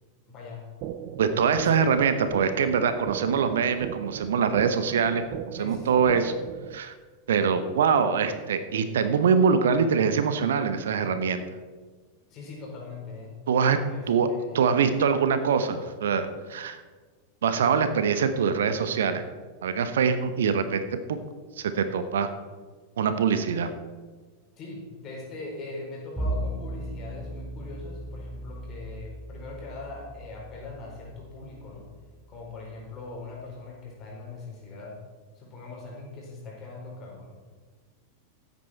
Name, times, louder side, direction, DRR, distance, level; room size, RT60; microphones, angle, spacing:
voice 1, 0.3-0.7 1.5-1.7 5.6-6.0 12.3-13.3 13.8-14.6 24.6-31.9 32.3-35.0 35.3-37.4, left 3 dB, 30° left, -2 dB, 4.5 m, -41 dB
sound 1, 0.8-6.8, right 10 dB, 45° right, 0.6 m, -38 dB
voice 2, 1.2-6.3 6.7-6.9 7.3-11.4 13.5-13.8 14.1-14.3 14.5-16.8 17.4-19.2 19.6-20.8 21.1-21.2 21.6-22.3 23.0-23.7, right 6 dB, 60° right, 10 dB, 0.9 m, -24 dB
Bowed string instrument, 26.2-32.6, right 1 dB, 5° left, 3.5 m, -37 dB
16.0 x 8.4 x 4.5 m, 1.4 s
figure-of-eight pair, 90°, 0 cm